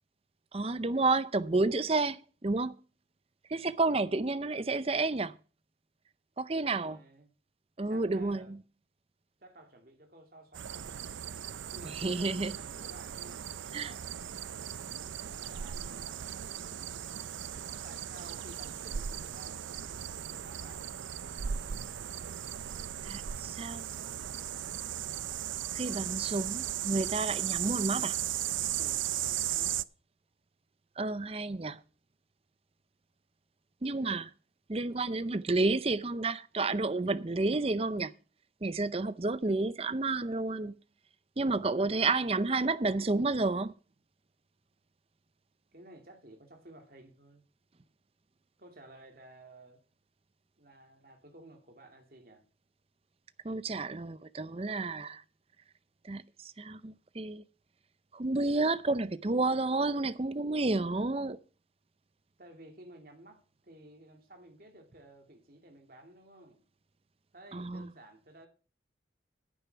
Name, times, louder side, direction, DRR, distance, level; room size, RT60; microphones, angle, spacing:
voice 1, 0.5-2.7 3.5-5.4 6.4-7.0 7.8-8.5 11.9-12.6 13.7-13.9 23.0-23.9 25.7-28.2 31.0-31.8 33.8-34.3 34.7-38.1 38.6-40.7 41.4-43.7 53.4-55.2 56.0-57.4 58.1-61.4 67.5-67.9, right 3 dB, 30° right, 0.6 m, -30 dB
voice 2, 6.7-7.3 7.9-8.5 9.4-11.3 11.7-14.3 15.4-16.6 17.8-20.9 21.5-22.3 28.8-29.8 41.8-42.4 45.7-47.4 48.6-49.8 50.6-52.5 62.4-66.6 67.3-68.5, right 1 dB, 50° right, 2.7 m, -54 dB
sound 1, 10.5-29.8, right 10 dB, 85° right, 0.5 m, -37 dB
10.5 x 9.0 x 5.8 m
head